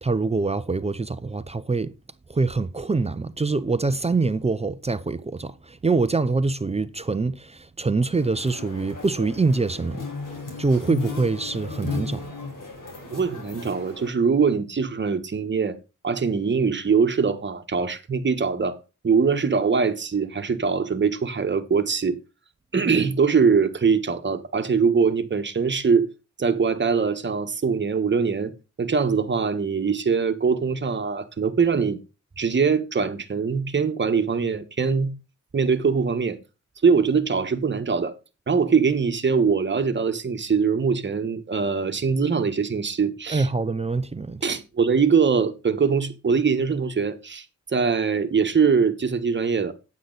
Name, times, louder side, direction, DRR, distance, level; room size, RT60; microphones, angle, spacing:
voice 1, 0.0-1.9 2.3-10.0 10.6-12.3 43.3-44.4, right 3 dB, 20° right, 0.6 m, -24 dB
sound 1, 8.1-14.1, left 3 dB, 80° left, 4.5 m, -35 dB
voice 2, 13.1-15.8 16.0-18.8 19.0-22.2 22.7-26.1 26.4-28.5 28.8-32.0 32.4-35.1 35.5-36.4 36.8-38.1 38.5-43.5 44.4-49.7, right 5 dB, 35° right, 1.3 m, -22 dB
9.5 x 8.5 x 4.0 m
wide cardioid pair, 140°, 31 cm